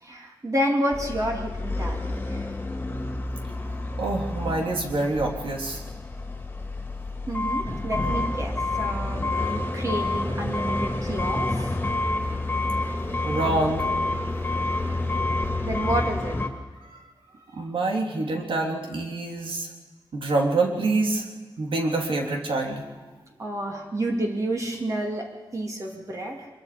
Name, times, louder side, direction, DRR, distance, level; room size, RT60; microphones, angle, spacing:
voice 1, 0.0-2.5 7.3-11.7 15.6-16.4 23.4-26.5, right 1 dB, 35° right, 1 dB, 2.7 m, -30 dB
sound 1, 0.9-16.5, left 2 dB, 20° left, 2.3 m, -28 dB
voice 2, 4.0-5.8 13.2-13.9 14.8-14.9 16.9-17.0 17.5-19.7 20.1-21.2 21.6-22.8, right 2 dB, 80° right, 1 dB, 3.5 m, -26 dB
24.5 x 22.5 x 5.2 m, 1.3 s
wide cardioid pair, 170°, 9 cm